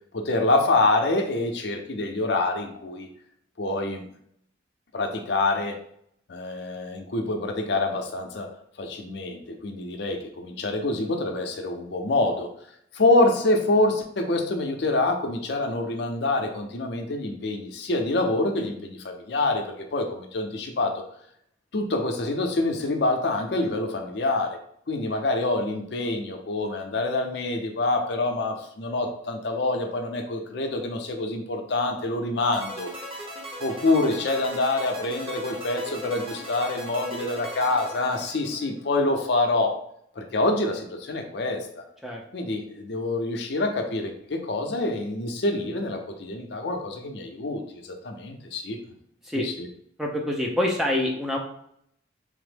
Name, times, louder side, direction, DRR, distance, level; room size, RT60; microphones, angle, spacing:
voice 1, 0.1-3.1 3.6-4.0 4.9-5.8 6.3-8.5 8.8-12.5 12.9-21.0 21.7-24.6 24.9-32.9 33.6-39.8 40.2-41.8 42.3-48.8 49.4-49.7, left 2 dB, 60° left, 4 dB, 0.5 m, -26 dB
sound 1, 32.5-38.8, right 1 dB, 30° right, 0.8 m, -38 dB
voice 2, 50.0-51.4, left 1 dB, ahead, -1 dB, 0.3 m, -26 dB
3.5 x 2.0 x 3.2 m, 0.69 s
head